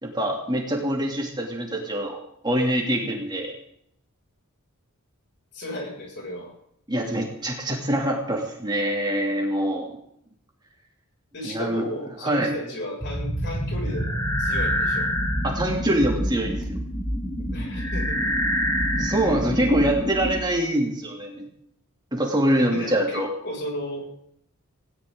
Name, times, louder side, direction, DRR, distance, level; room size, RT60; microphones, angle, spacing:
voice 1, 0.0-2.2 2.4-3.5 6.9-9.9 11.4-11.8 12.2-12.5 15.4-16.8 19.0-21.5 22.1-23.3, right 1 dB, 20° right, 0 dB, 3.0 m, -24 dB
voice 2, 5.5-6.5 11.3-15.1 17.5-18.3 22.7-24.1, left 1 dB, 55° left, -1 dB, 6.9 m, -34 dB
sound 1, 13.0-20.4, equal, 15° left, 3.4 m, -26 dB
19.5 x 17.5 x 4.0 m, 0.72 s
head